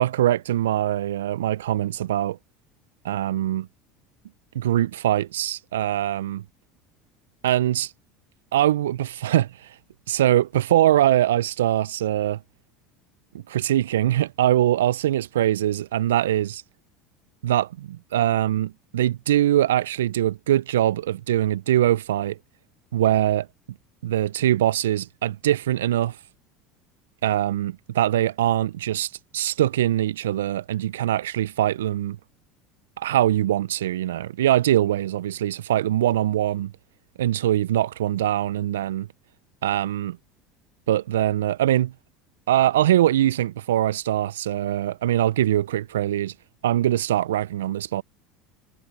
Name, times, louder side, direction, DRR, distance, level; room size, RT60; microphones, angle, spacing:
voice 1, 0.0-2.4 3.0-3.7 4.5-6.4 7.4-7.9 8.5-9.8 10.1-12.4 13.5-16.6 17.4-22.4 22.9-23.5 24.0-26.2 27.2-32.2 33.0-36.7 37.2-39.0 39.6-40.2 40.9-41.9 42.5-46.3 46.6-48.0, right 12 dB, 75° right, 0.6 m, -22 dB
figure-of-eight pair, 70°, 0 cm